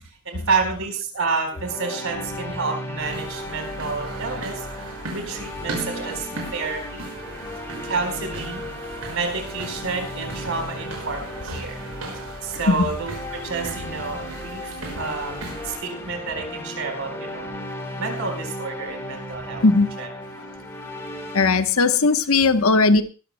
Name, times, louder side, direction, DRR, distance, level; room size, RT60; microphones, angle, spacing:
voice 1, 0.2-4.6 5.1-7.1 7.8-8.6 9.1-11.8 12.4-17.5 18.0-19.6 20.0-20.1 20.4-20.5, right 4 dB, 65° right, 4 dB, 4.3 m, -29 dB
sound 1, 1.5-21.5, left 1 dB, 10° left, 2.6 m, -36 dB
sound 2, 3.0-15.8, right 2 dB, 85° right, 5.9 m, -37 dB
voice 2, 21.3-23.0, left 3 dB, 70° left, 9 dB, 1.0 m, -18 dB
22.0 x 13.0 x 2.2 m, 0.34 s
head